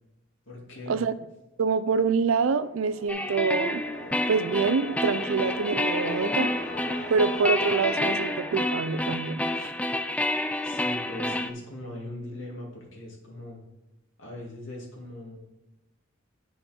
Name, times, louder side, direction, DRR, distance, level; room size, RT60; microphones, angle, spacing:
voice 1, 0.5-1.0 10.6-13.6 14.2-15.4, left 1 dB, 70° left, -1 dB, 2.2 m, -40 dB
voice 2, 1.6-3.8 4.3-6.5 7.1-9.7, right 5 dB, 80° right, 14 dB, 0.4 m, -26 dB
sound 1, 2.2-10.0, equal, 40° left, 2.1 m, -41 dB
sound 2, 3.1-11.5, left 1 dB, 5° left, 0.3 m, -29 dB
8.5 x 5.6 x 4.3 m, 0.93 s
head